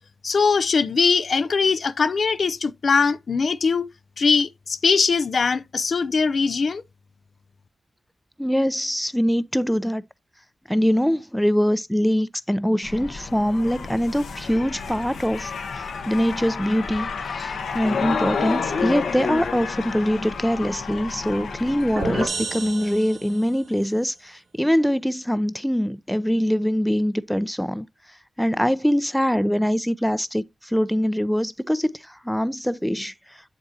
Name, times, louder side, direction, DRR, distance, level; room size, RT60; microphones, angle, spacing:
voice 1, 0.2-3.9 4.2-6.8, left 5 dB, 70° left, 0.4 m, -21 dB
voice 2, 8.4-10.0 10.7-27.9 28.4-33.1, equal, 5° left, 0.6 m, -23 dB
sound 1, 12.8-22.3, left 5 dB, 90° left, 1.0 m, -30 dB
sound 2, 22.0-23.7, right 4 dB, 70° right, 0.8 m, -31 dB
7.5 x 7.4 x 2.7 m
cardioid pair, 40°, 0 cm